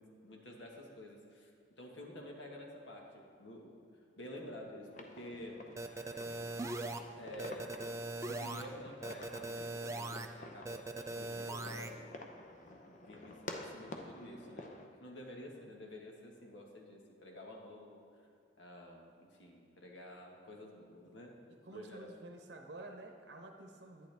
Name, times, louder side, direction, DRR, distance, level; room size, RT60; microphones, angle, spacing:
voice 1, 0.0-3.8 4.2-5.6 7.2-7.8 8.2-10.8 11.1-12.4 12.7-14.7 15.0-18.0 18.6-21.4 21.7-22.1, left 1 dB, 80° left, 0 dB, 1.5 m, -50 dB
sound 1, 4.9-14.9, left 2 dB, 40° left, 0.7 m, -50 dB
sound 2, 5.8-7.0 7.4-8.6 9.0-10.3 10.6-11.9, right 2 dB, 15° right, 0.3 m, -40 dB
voice 2, 21.7-24.1, right 2 dB, 65° right, 4 dB, 0.8 m, -50 dB
11.0 x 9.7 x 3.5 m, 2.4 s
head